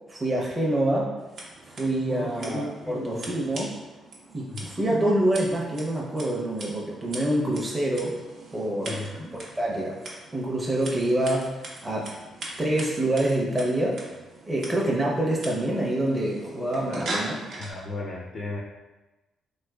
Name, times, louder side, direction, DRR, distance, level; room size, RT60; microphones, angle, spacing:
voice 1, 0.1-1.1 1.7-3.7 4.3-8.2 8.5-9.0 9.6-10.0 10.3-12.2 12.6-14.0 14.5-17.4, right 1 dB, 20° right, -3 dB, 0.6 m, -26 dB
Scissors, 1.2-17.7, right 2 dB, 65° right, 0.7 m, -41 dB
voice 2, 2.1-3.3 4.5-5.1 8.8-9.4 17.6-18.6, left 2 dB, 50° left, -2 dB, 0.4 m, -35 dB
3.1 x 3.1 x 2.3 m, 1.1 s
cardioid pair, 90°, 0 cm